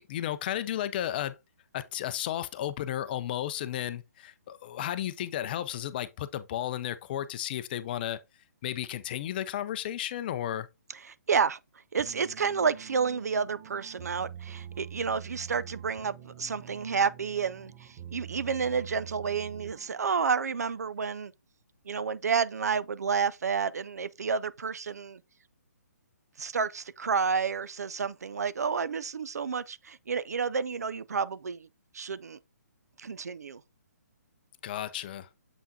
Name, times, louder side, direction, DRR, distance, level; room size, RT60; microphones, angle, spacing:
voice 1, 0.0-1.4 1.7-8.2 8.6-10.7 34.6-35.3, left 11 dB, 35° left, 0.5 m, -33 dB
voice 2, 10.9-11.6 11.9-21.3 21.9-25.2 26.4-31.7 31.9-32.4 33.0-33.6, right 6 dB, 70° right, 0.4 m, -30 dB
sound 1, 12.0-20.1, right 9 dB, 35° right, 1.0 m, -45 dB
7.2 x 5.4 x 2.7 m
figure-of-eight pair, 135°, 9 cm